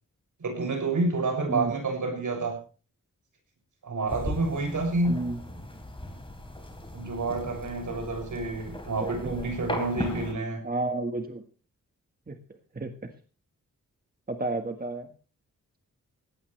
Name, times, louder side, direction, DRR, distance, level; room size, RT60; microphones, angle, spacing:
voice 1, 0.4-2.6 3.8-5.2 6.9-10.6, right 3 dB, 70° right, 3 dB, 7.1 m, -29 dB
sound 1, 4.1-10.3, left 1 dB, 15° left, 4.1 m, -38 dB
voice 2, 5.1-5.4 9.0-9.5 10.6-11.4 12.3-12.4 12.7-13.1 14.3-15.1, right 2 dB, 30° right, 5 dB, 1.6 m, -32 dB
18.5 x 17.5 x 3.4 m, 0.38 s
wide cardioid pair, 130°, 32 cm